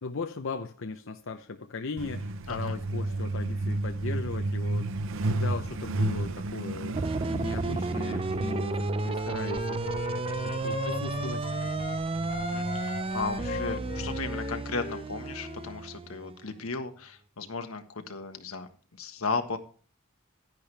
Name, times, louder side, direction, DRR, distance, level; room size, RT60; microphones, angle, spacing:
voice 1, 0.0-4.8 5.2-7.0 7.3-9.8 10.6-11.8, left 3 dB, 65° left, 6 dB, 0.8 m, -37 dB
Truck, 2.0-14.3, right 2 dB, 65° right, 0.7 m, -34 dB
sound 1, 6.9-16.5, right 3 dB, 25° right, 0.5 m, -32 dB
Wind instrument woodwind instrument, 9.1-12.0 12.3-15.8, left 4 dB, 35° left, 0.5 m, -39 dB
voice 2, 10.4-10.7 12.5-19.6, left 4 dB, 90° left, 6 dB, 1.5 m, -35 dB
11.0 x 10.5 x 3.4 m, 0.43 s
head